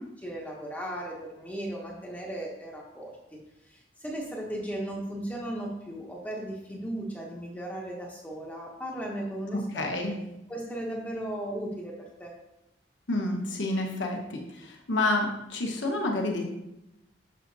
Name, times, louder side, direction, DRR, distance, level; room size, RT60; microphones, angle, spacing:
voice 1, 0.2-3.4 3.7-9.8 10.5-12.3, right 1 dB, 10° left, -2 dB, 0.7 m, -36 dB
voice 2, 9.7-10.2 13.1-16.4, left 2 dB, 75° left, 1 dB, 1.1 m, -29 dB
6.5 x 5.6 x 2.7 m, 0.90 s
head